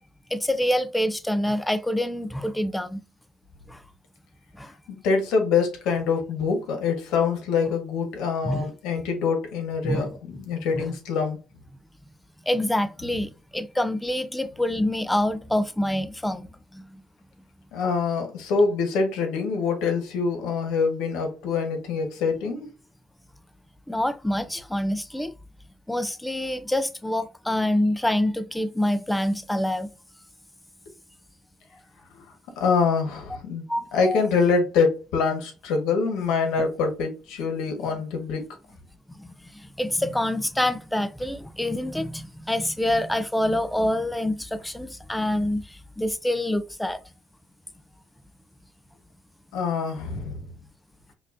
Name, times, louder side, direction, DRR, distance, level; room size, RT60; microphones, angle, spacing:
voice 1, 0.3-3.0 3.7-3.8 4.6-4.7 8.4-8.7 9.8-10.1 10.7-10.9 12.5-16.5 16.7-16.9 23.9-25.3 25.9-29.9 33.7-34.2 39.2-39.3 39.8-47.0, left 1 dB, 5° left, 0.3 m, -26 dB
voice 2, 4.9-11.4 17.7-22.7 32.1-32.2 32.6-33.6 33.9-38.4 49.5-50.4, left 5 dB, 90° left, 1.3 m, -25 dB
5.3 x 2.5 x 2.5 m
cardioid pair, 115°, 0 cm